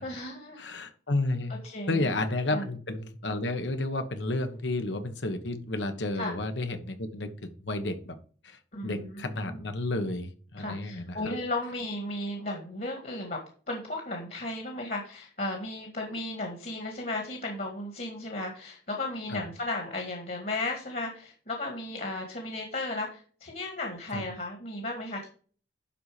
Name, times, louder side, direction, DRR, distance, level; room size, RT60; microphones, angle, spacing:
voice 1, 0.0-0.7 1.6-2.1 2.5-2.7 6.2-6.3 8.7-9.6 10.6-13.4 13.7-25.3, left 2 dB, 50° left, 2 dB, 1.9 m, -35 dB
voice 2, 0.6-1.5 1.9-8.2 8.4-11.3 19.3-19.4 24.1-24.2, left 2 dB, 80° left, 8 dB, 1.3 m, -31 dB
11.5 x 4.2 x 5.0 m, 0.42 s
head